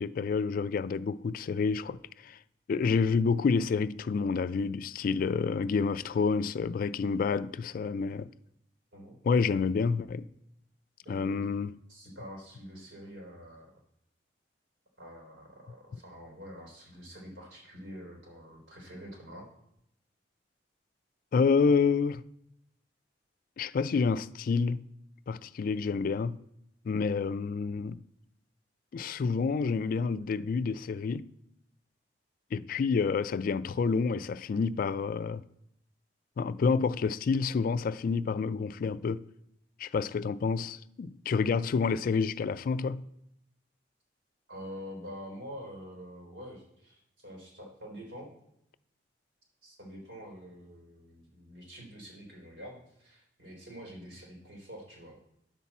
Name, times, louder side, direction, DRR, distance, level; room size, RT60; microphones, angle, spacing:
voice 1, 0.0-2.4 2.7-8.3 9.3-10.3 11.1-11.7 21.3-22.2 23.6-24.8 25.3-26.4 26.9-28.0 28.9-31.3 32.5-35.4 36.4-39.2 39.8-43.1, left 5 dB, 50° left, 0.3 m, -28 dB
voice 2, 11.0-11.5 11.9-13.7 15.0-19.5 44.5-48.3 49.6-55.2, equal, 85° right, 3.6 m, -46 dB
10.0 x 7.2 x 4.2 m
head